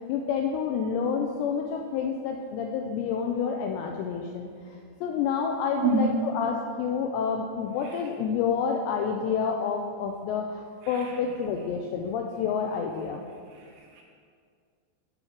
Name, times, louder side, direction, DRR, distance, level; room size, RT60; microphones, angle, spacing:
voice 1, 0.0-4.5 5.0-13.2, left 6 dB, 85° left, 2 dB, 2.5 m, -29 dB
voice 2, 5.8-6.2 7.8-8.0 10.8-11.2 13.5-14.0, right 3 dB, 75° right, 0 dB, 2.7 m, -29 dB
7.2 x 5.4 x 5.9 m, 2.1 s
omnidirectional pair, 5.4 m